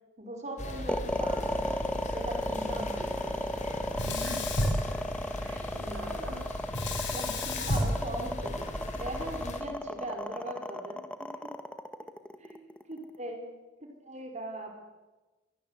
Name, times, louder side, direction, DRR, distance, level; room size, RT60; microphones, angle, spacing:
voice 1, 0.2-1.6 2.1-3.4 7.1-11.5 12.4-13.5 13.8-14.8, right 1 dB, 40° right, 3 dB, 5.0 m, -40 dB
sound 1, 0.6-9.6, left 1 dB, 40° left, 4.2 m, -39 dB
sound 2, 0.9-13.2, left 1 dB, 5° left, 1.7 m, -34 dB
Sink (filling or washing), 3.9-5.6 6.7-9.0, left 1 dB, 75° left, 7.2 m, -32 dB
voice 2, 4.0-4.7 5.4-6.5 7.0-7.2 8.4-8.5, equal, 75° right, 1 dB, 5.7 m, -43 dB
25.5 x 22.0 x 8.3 m, 1.1 s
head